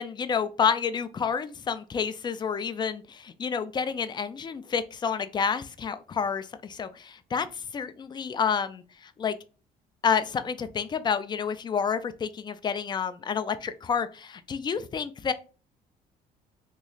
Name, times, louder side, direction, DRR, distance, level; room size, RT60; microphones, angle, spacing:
voice 1, 0.0-9.4 10.0-15.3, left 6 dB, 25° left, 11 dB, 0.4 m, -29 dB
3.0 x 2.4 x 3.9 m, 0.34 s
cardioid pair, 110°, 17 cm